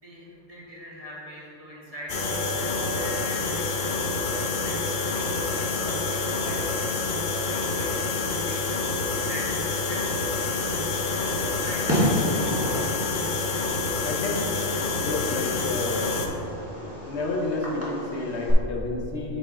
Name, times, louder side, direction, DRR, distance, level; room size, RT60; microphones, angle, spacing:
voice 1, 0.0-4.0 4.6-6.9 7.3-8.6 9.1-10.0 10.9-12.0, equal, 30° right, -6 dB, 1.5 m, -42 dB
sound 1, 2.1-16.3, left 4 dB, 50° left, 0.7 m, -28 dB
sound 2, 2.1-13.8, right 4 dB, 55° right, 0.6 m, -41 dB
Fireworks, 10.5-18.5, equal, 10° right, 1.5 m, -32 dB
voice 2, 12.5-12.8 14.0-14.4 15.0-16.2 17.1-19.4, left 2 dB, 70° left, 0 dB, 1.1 m, -30 dB
7.5 x 4.6 x 4.2 m, 2.7 s
omnidirectional pair, 1.2 m